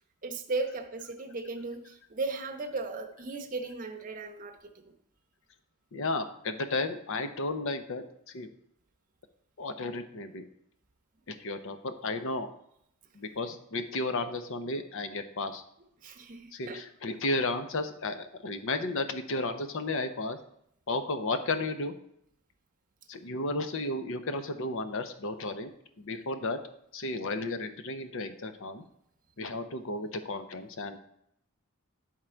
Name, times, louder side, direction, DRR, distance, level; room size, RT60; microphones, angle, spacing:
voice 1, 0.2-4.8 16.0-16.8, right 3 dB, 35° right, 3 dB, 0.8 m, -36 dB
voice 2, 5.9-8.0 8.3-8.5 9.6-10.5 11.3-12.5 13.1-15.6 16.5-20.4 20.9-21.9 23.1-25.7 26.0-26.6 26.9-28.8 29.4-31.0, left 2 dB, 60° left, 9 dB, 0.7 m, -33 dB
10.0 x 3.7 x 4.4 m, 0.73 s
head